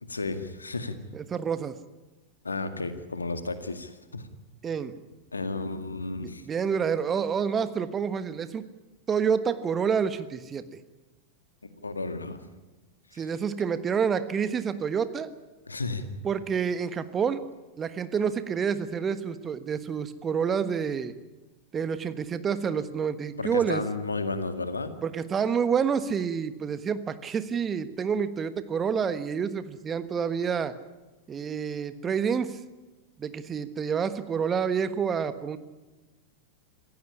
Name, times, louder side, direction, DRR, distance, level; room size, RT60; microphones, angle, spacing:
voice 1, 0.0-1.0 2.4-4.3 5.3-6.5 11.8-12.4 13.1-13.2 15.7-16.0 23.4-24.9, left 3 dB, 80° left, 9 dB, 2.0 m, -33 dB
voice 2, 1.1-1.8 4.6-4.9 6.2-8.7 9.1-10.8 13.1-15.3 16.2-17.4 17.8-21.1 21.7-23.8 25.0-30.7 31.3-32.6 33.2-35.6, right 6 dB, 20° right, 12 dB, 1.4 m, -28 dB
26.0 x 16.0 x 10.0 m, 1.1 s
figure-of-eight pair, 90°, 0 cm